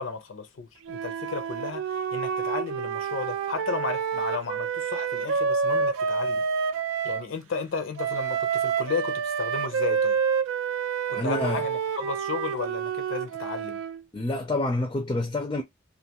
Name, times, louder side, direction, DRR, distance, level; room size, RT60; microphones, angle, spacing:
voice 1, 0.0-6.4 7.0-10.2 11.1-13.8, left 5 dB, 75° left, 0.5 m, -34 dB
Wind instrument woodwind instrument, 0.9-7.3 8.0-14.0, right 6 dB, 90° right, 0.4 m, -28 dB
voice 2, 11.1-11.6 14.1-15.6, left 2 dB, 20° left, 0.4 m, -28 dB
2.5 x 2.3 x 2.8 m
head